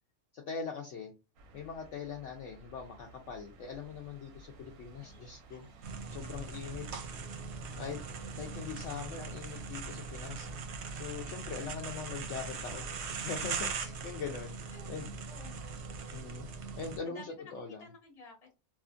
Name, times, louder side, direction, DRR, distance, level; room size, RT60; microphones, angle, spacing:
voice 1, 0.3-1.1 1.5-5.7 6.1-7.1 7.8-8.0 8.4-10.5 10.9-15.1 16.1-16.5 16.7-17.8, left 6 dB, 65° left, 1 dB, 0.8 m, -42 dB
sound 1, 1.4-11.0, right 4 dB, 90° right, 1.0 m, -56 dB
sound 2, 5.8-17.0, right 5 dB, 60° right, 0.7 m, -40 dB
voice 2, 7.7-8.7 14.7-14.9 15.3-15.8 17.0-18.5, left 3 dB, 30° left, 1 dB, 0.9 m, -54 dB
2.8 x 2.4 x 2.4 m, 0.28 s
omnidirectional pair, 1.5 m